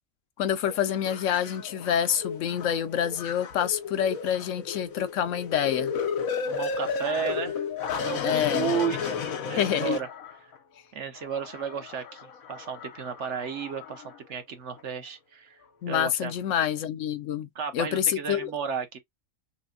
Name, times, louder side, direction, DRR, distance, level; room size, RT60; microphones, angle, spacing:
voice 1, 0.4-5.9 8.2-8.7 9.6-9.9 15.8-17.5 17.7-18.5, left 9 dB, 70° left, 1.0 m, -27 dB
sound 1, 0.7-10.6 11.2-14.2 14.8-14.9, left 6 dB, 85° left, 1.3 m, -33 dB
voice 2, 6.5-7.6 7.9-9.2 9.5-10.1 10.4-10.5 10.9-15.6 15.9-16.3 17.5-19.0, right 7 dB, 60° right, 1.2 m, -33 dB
6.0 x 2.2 x 2.4 m
omnidirectional pair, 1.4 m